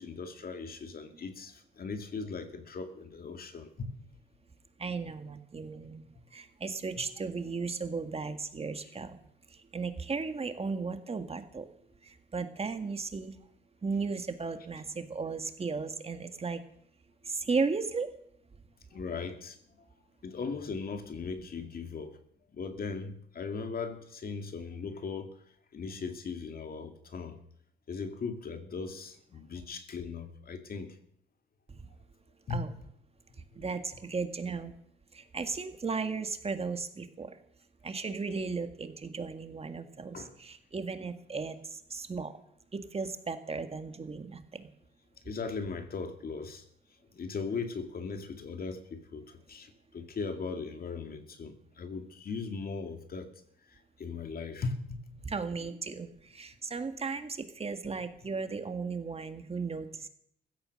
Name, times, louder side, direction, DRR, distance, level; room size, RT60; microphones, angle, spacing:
voice 1, 0.0-3.9 18.9-19.6 20.2-22.1 22.5-25.3 25.7-27.4 27.9-31.0 32.5-32.6 40.1-40.3 45.2-46.6 47.1-53.3 53.7-55.2, left 4 dB, 50° left, 7 dB, 2.3 m, -38 dB
voice 2, 4.8-6.0 6.3-11.7 12.0-13.4 13.8-16.6 17.2-18.1 31.7-31.8 32.5-32.8 33.5-34.8 35.1-37.4 37.8-42.3 42.7-44.7 55.2-60.1, right 4 dB, 30° right, 8 dB, 1.8 m, -35 dB
16.0 x 13.5 x 6.5 m, 0.69 s
cardioid pair, 90°, 20 cm